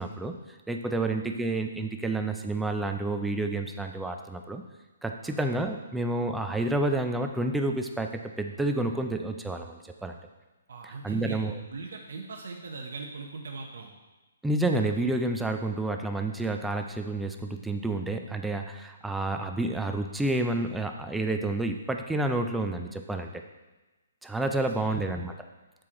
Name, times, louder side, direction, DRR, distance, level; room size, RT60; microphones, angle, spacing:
voice 1, 0.0-4.6 5.0-10.2 10.8-11.6 14.4-23.3 24.2-25.3, right 2 dB, 5° right, 4 dB, 0.4 m, -29 dB
voice 2, 10.7-11.4 11.7-13.9 24.6-25.1, right 4 dB, 70° right, 1 dB, 0.8 m, -40 dB
7.6 x 4.6 x 3.7 m, 1.1 s
hypercardioid pair, 160°, 0 cm